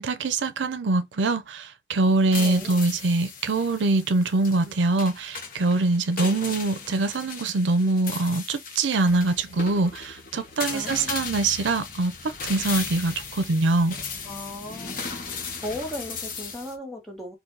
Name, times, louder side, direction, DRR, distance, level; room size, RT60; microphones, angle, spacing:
voice 1, 0.0-14.0, right 2 dB, 90° right, 0.6 m, -24 dB
sound 1, 2.0-16.8, left 5 dB, 50° left, 0.9 m, -37 dB
voice 2, 2.4-2.8 10.7-11.1 14.2-15.0 15.6-17.3, left 1 dB, ahead, 1.4 m, -36 dB
3.9 x 2.6 x 4.6 m
head